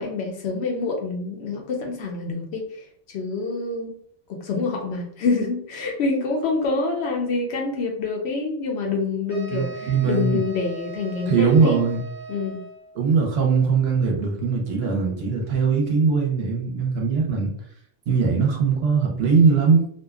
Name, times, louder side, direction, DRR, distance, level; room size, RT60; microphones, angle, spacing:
voice 1, 0.0-2.7 3.1-3.9 4.3-11.8 12.3-12.6, left 3 dB, 70° left, 1 dB, 0.8 m, -26 dB
sound 1, 9.3-13.0, right 5 dB, 20° right, 0.9 m, -39 dB
voice 2, 9.5-10.4 11.3-12.0 12.9-17.5 18.1-19.8, right 5 dB, 65° right, 0 dB, 0.8 m, -20 dB
2.6 x 2.1 x 2.3 m, 0.62 s
omnidirectional pair, 1.2 m